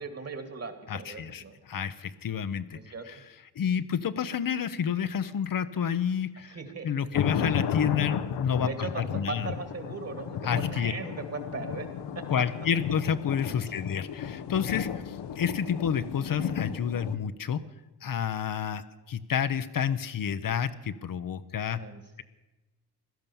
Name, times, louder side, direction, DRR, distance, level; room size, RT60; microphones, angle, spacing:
voice 1, 0.0-1.6 2.7-3.2 6.4-7.1 8.6-11.9 12.1-12.4 13.5-13.8 21.7-22.2, right 4 dB, 35° right, 9 dB, 2.2 m, -39 dB
voice 2, 0.9-2.8 3.1-3.2 3.6-6.6 6.8-9.5 10.4-10.9 12.3-17.6 18.0-21.8, left 8 dB, 55° left, 11 dB, 0.8 m, -29 dB
sound 1, 7.1-17.2, left 8 dB, 80° left, 1.0 m, -34 dB
16.5 x 12.0 x 7.1 m, 1.1 s
cardioid pair, 110°, 41 cm